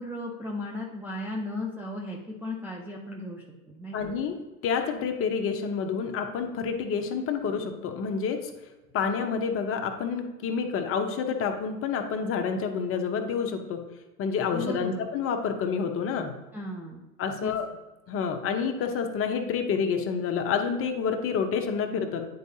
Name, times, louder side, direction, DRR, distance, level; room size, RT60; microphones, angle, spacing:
voice 1, 0.0-4.1 14.5-15.0 16.5-17.0 17.4-17.5, left 1 dB, 5° right, -4 dB, 0.4 m, -36 dB
voice 2, 3.9-4.4 4.6-8.5 8.9-13.8 14.2-16.3 17.2-17.7 18.1-22.2, left 6 dB, 30° left, 4 dB, 0.8 m, -28 dB
9.1 x 4.7 x 2.8 m, 1.1 s
hypercardioid pair, 105°, 46 cm